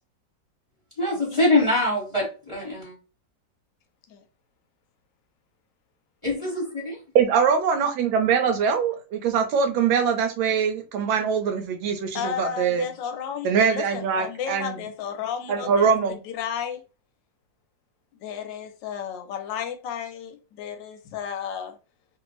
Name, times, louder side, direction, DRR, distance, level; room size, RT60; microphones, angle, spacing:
voice 1, 1.0-2.9 6.2-7.0, left 2 dB, 15° left, 1.4 m, -24 dB
voice 2, 7.1-12.9 13.4-14.8 15.5-16.2, right 6 dB, 85° right, 1.4 m, -23 dB
voice 3, 12.1-16.8 18.2-21.8, left 8 dB, 75° left, 1.2 m, -33 dB
3.0 x 2.6 x 2.9 m
omnidirectional pair, 2.1 m